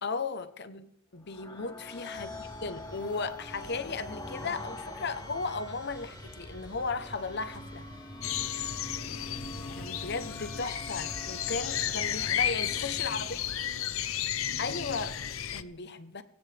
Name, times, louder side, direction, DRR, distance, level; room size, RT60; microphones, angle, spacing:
voice 1, 0.0-7.9 9.8-13.4 14.6-15.1 15.5-16.2, left 4 dB, 50° left, 1.0 m, -36 dB
sound 1, 1.2-13.7, left 1 dB, 20° left, 4.5 m, -45 dB
sound 2, 2.1-13.6, equal, 5° right, 4.4 m, -48 dB
voice 2, 2.1-2.6 13.0-14.0 14.9-15.6, right 1 dB, 85° right, 3.0 m, -56 dB
sound 3, 8.2-15.6, left 10 dB, 75° left, 0.8 m, -33 dB
24.5 x 16.0 x 3.5 m
head